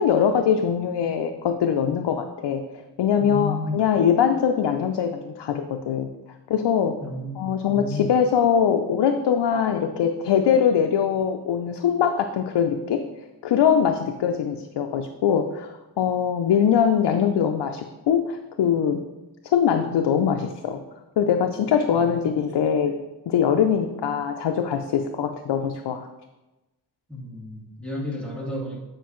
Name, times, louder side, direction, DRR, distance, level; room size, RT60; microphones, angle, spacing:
voice 1, 0.0-2.6 3.0-6.1 6.5-7.0 7.4-13.1 13.4-19.0 19.5-20.8 21.2-26.1, left 8 dB, 85° left, 5 dB, 0.5 m, -22 dB
voice 2, 3.2-3.8 7.0-8.0 21.9-22.2 27.1-28.8, left 2 dB, 5° left, -5 dB, 1.9 m, -32 dB
9.1 x 5.1 x 3.0 m, 1.0 s
wide cardioid pair, 90°, 41 cm